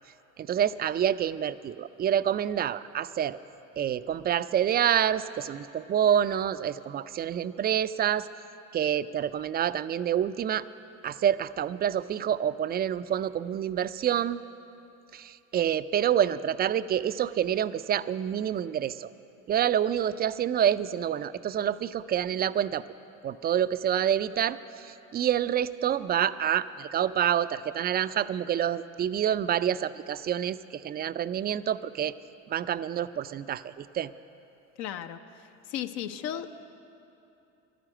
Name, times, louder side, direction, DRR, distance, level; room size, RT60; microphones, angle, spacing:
voice 1, 0.4-3.4 3.8-8.3 8.7-10.6 11.0-14.4 15.1-19.1 19.5-22.8 23.2-32.1 32.5-34.1, right 10 dB, 25° right, 14 dB, 0.4 m, -27 dB
voice 2, 34.8-36.5, left 10 dB, 65° left, 9 dB, 0.8 m, -36 dB
12.0 x 10.0 x 9.0 m, 2.9 s
hypercardioid pair, 70°, 38 cm